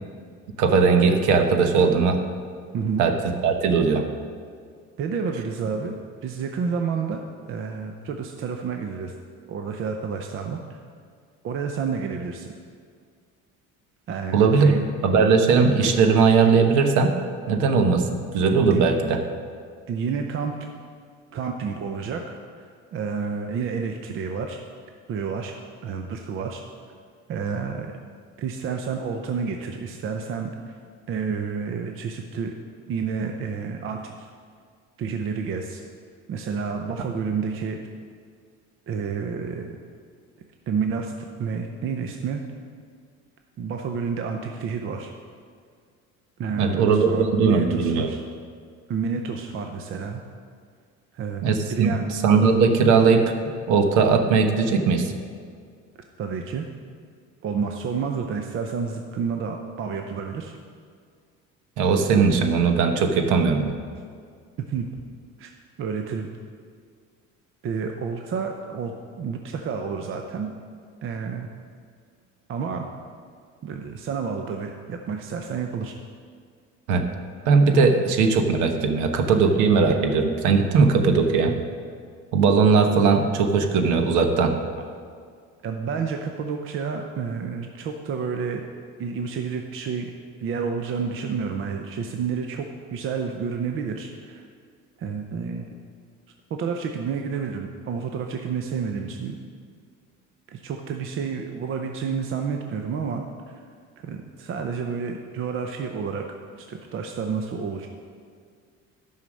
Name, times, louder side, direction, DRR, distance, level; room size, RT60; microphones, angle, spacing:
voice 1, 0.6-2.2 3.0-3.1 3.4-4.0 14.3-14.8 15.0-17.1 17.5-19.2 46.5-48.1 51.4-53.3 53.7-55.1 61.8-63.7 76.9-77.1 77.5-81.6 82.3-84.5, right 5 dB, 85° right, 5 dB, 1.2 m, -19 dB
voice 2, 2.7-3.0 5.0-5.9 6.2-9.1 9.5-10.8 11.4-12.5 14.1-14.8 18.7-18.9 19.9-20.7 21.3-22.2 22.6-24.6 25.1-25.6 25.8-26.6 27.3-28.0 28.4-30.8 31.1-32.5 32.9-34.3 35.0-35.8 36.3-37.8 38.9-39.8 40.7-42.4 43.6-45.1 46.4-48.2 48.9-50.2 51.1-51.4 51.7-52.1 56.2-56.7 57.4-60.6 64.7-64.9 65.4-65.5 65.8-66.3 67.6-70.5 71.0-71.5 72.5-72.9 73.6-75.9 85.6-88.6 89.0-90.1 90.4-92.7 92.9-94.4 95.0-95.7 96.5-99.4 100.5-103.6 104.0-107.9, right 5 dB, 45° right, 4 dB, 0.7 m, -30 dB
11.0 x 5.7 x 6.3 m, 2.1 s
cardioid pair, 135°, 29 cm